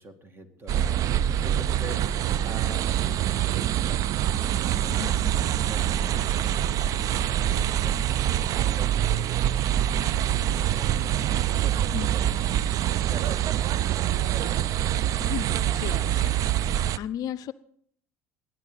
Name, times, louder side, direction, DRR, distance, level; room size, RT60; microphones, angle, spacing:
voice 1, 0.0-5.1 5.4-14.9, right 2 dB, 30° right, 8 dB, 2.1 m, -46 dB
sound 1, 0.7-17.0, right 11 dB, 45° right, 0.5 m, -25 dB
voice 2, 4.9-5.3 11.9-12.1 15.2-16.3 16.8-17.5, left 10 dB, 50° left, 17 dB, 0.5 m, -35 dB
19.5 x 10.5 x 4.0 m, 0.63 s
hypercardioid pair, 70°, 8 cm